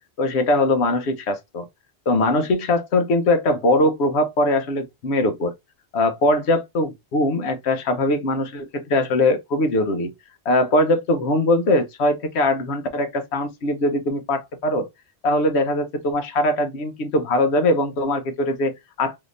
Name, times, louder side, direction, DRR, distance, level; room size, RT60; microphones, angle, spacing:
voice 1, 0.2-1.7 2.1-5.5 5.9-10.1 10.5-14.9 15.2-19.2, left 1 dB, 85° left, 1.1 m, -21 dB
3.5 x 2.8 x 2.5 m
omnidirectional pair, 1.1 m